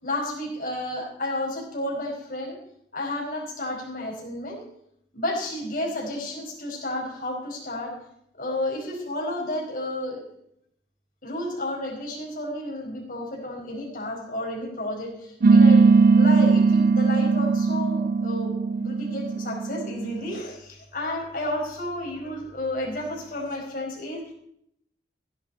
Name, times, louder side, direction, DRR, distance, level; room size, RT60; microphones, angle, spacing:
voice 1, 0.0-2.6 2.9-4.6 5.1-7.9 8.3-10.2 11.2-24.2, left 1 dB, 50° left, -2 dB, 5.0 m, -31 dB
sound 1, 15.4-20.4, right 4 dB, 55° right, 0.4 m, -19 dB
16.5 x 10.5 x 4.4 m, 0.72 s
head